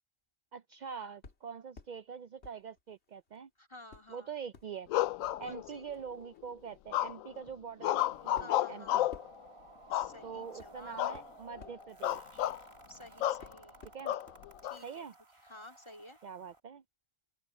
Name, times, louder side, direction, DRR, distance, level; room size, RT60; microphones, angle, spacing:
voice 1, 0.5-3.5 4.1-4.9 5.4-9.1 10.2-12.5 13.9-14.1 14.8-15.1 16.2-16.8, right 6 dB, 80° right, 0.4 m, -44 dB
sound 1, 1.2-2.0 2.4-3.4 3.9-13.0 13.4-14.4 14.7-14.8, left 4 dB, 55° left, 2.2 m, -57 dB
voice 2, 3.6-4.3 5.4-5.8 8.3-8.9 9.9-11.2 12.9-13.8 14.6-15.1 15.4-16.2, left 1 dB, 20° left, 2.8 m, -52 dB
sound 2, 4.9-5.9 6.9-7.4 7.8-9.3 9.9-10.5 11.0-11.2 11.5-11.7 12.0-12.6 13.2-13.5 14.1-14.8, left 13 dB, 85° left, 1.0 m, -32 dB
sound 3, 7.9-16.6, right 2 dB, 25° right, 1.8 m, -56 dB
omnidirectional pair, 1.3 m